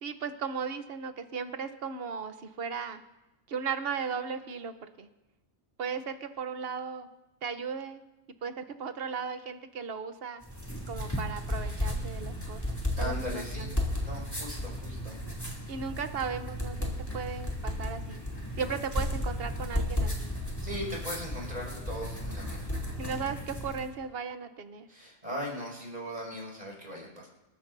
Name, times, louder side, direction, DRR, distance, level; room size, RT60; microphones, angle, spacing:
voice 1, 0.0-3.0 3.5-5.1 5.8-7.1 7.4-8.0 8.4-10.4 10.9-13.8 15.7-18.2 18.6-20.4 23.0-24.9, right 6 dB, 50° right, 9 dB, 1.0 m, -36 dB
sound 1, 10.4-23.9, left 1 dB, 15° left, 2.8 m, -34 dB
voice 2, 13.0-13.7 14.0-15.2 20.6-22.7 24.9-27.3, equal, 35° right, -2 dB, 6.0 m, -39 dB
27.5 x 13.5 x 2.7 m, 1.0 s
omnidirectional pair, 1.3 m